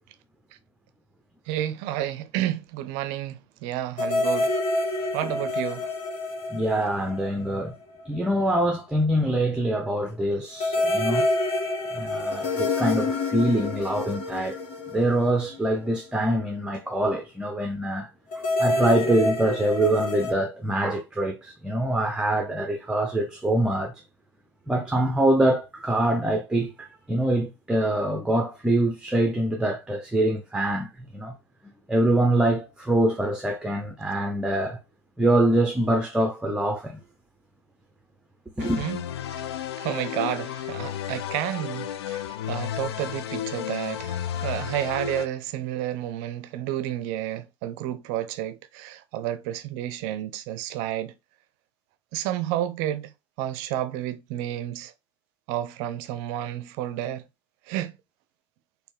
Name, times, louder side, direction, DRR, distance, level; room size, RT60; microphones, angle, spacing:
voice 1, 1.5-4.5 5.1-5.9 38.6-39.0 39.8-42.2 42.5-51.1 52.1-53.1 53.4-54.9 55.5-57.2 57.7-57.9, right 12 dB, 50° right, 0.5 m, -31 dB
sound 1, 4.0-7.7 8.0-8.1 10.6-16.0 18.3-20.3, left 2 dB, 45° left, 1.2 m, -27 dB
voice 2, 6.5-7.7 8.1-11.3 11.9-14.6 14.9-18.1 18.4-23.9 24.7-31.3 31.9-34.8 35.2-37.0 38.6-38.8, right 1 dB, 5° right, 0.6 m, -24 dB
sound 2, 38.6-45.3, left 10 dB, 65° left, 0.4 m, -33 dB
4.3 x 2.7 x 3.2 m
figure-of-eight pair, 80°, 14 cm